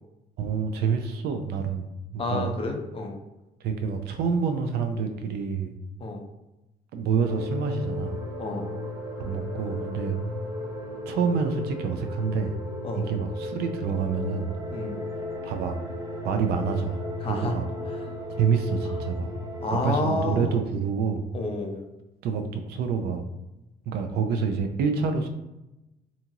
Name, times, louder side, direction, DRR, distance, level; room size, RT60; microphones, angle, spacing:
voice 1, 0.4-1.9 2.3-2.5 3.6-5.7 6.9-8.2 9.2-10.2 11.1-12.5 12.9-14.5 15.4-15.8 16.2-17.6 18.4-19.3 19.8-21.3 22.2-23.2 23.9-25.3, right 6 dB, 70° right, 6 dB, 0.4 m, -27 dB
voice 2, 2.2-3.2 6.0-6.2 8.4-8.7 12.8-13.1 14.7-15.0 17.2-17.5 17.9-18.0 19.6-20.6 21.3-21.8, left 2 dB, 35° left, 2 dB, 0.5 m, -30 dB
sound 1, 7.2-20.0, left 2 dB, 20° right, 0.6 m, -35 dB
2.8 x 2.4 x 2.8 m, 0.95 s
cardioid pair, 110°, 17 cm